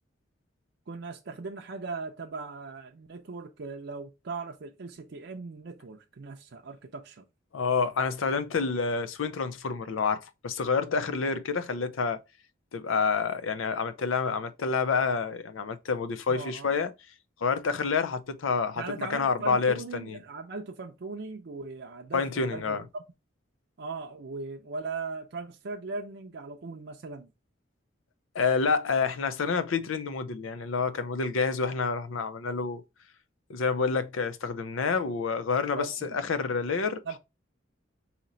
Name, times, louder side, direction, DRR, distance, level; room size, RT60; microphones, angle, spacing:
voice 1, 0.9-7.3 16.3-16.7 18.8-23.0 23.8-27.3 35.8-36.2 37.1-37.2, right 3 dB, 60° right, 0.5 m, -39 dB
voice 2, 7.5-12.2 12.7-16.9 17.4-20.2 22.1-22.8 28.3-32.8 33.5-37.0, left 5 dB, 85° left, 0.5 m, -28 dB
4.2 x 2.8 x 3.9 m
head